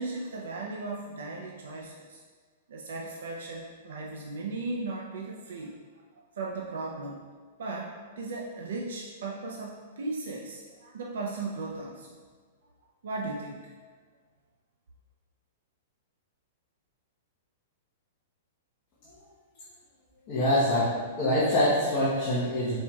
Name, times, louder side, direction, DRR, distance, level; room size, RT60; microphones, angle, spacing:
voice 1, 0.0-2.2 2.7-5.7 6.4-7.2 7.6-12.2 13.0-13.6, right 3 dB, 80° right, -1 dB, 0.5 m, -36 dB
voice 2, 20.3-22.8, left 1 dB, 25° left, -10 dB, 0.9 m, -25 dB
4.4 x 4.3 x 2.3 m, 1.5 s
supercardioid pair, 175°, 0 cm